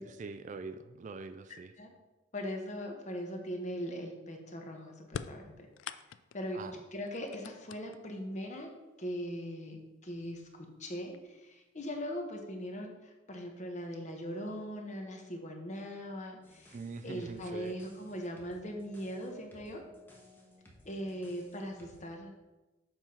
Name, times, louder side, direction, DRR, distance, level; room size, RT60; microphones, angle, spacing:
voice 1, 0.0-1.7 6.5-6.8 16.7-17.7, right 4 dB, 40° right, 10 dB, 0.3 m, -43 dB
voice 2, 2.3-6.0 6.3-6.6 6.9-8.7 9.0-16.8 17.0-19.8 20.8-22.3, equal, 35° left, 3 dB, 1.1 m, -40 dB
sound 1, 5.0-6.5 7.1-8.2 9.3-9.4 10.4-10.5 10.9-11.4, left 7 dB, 65° left, 0.3 m, -44 dB
sound 2, 16.4-22.1, left 1 dB, 10° left, 1.1 m, -58 dB
7.1 x 5.4 x 4.4 m, 1.1 s
head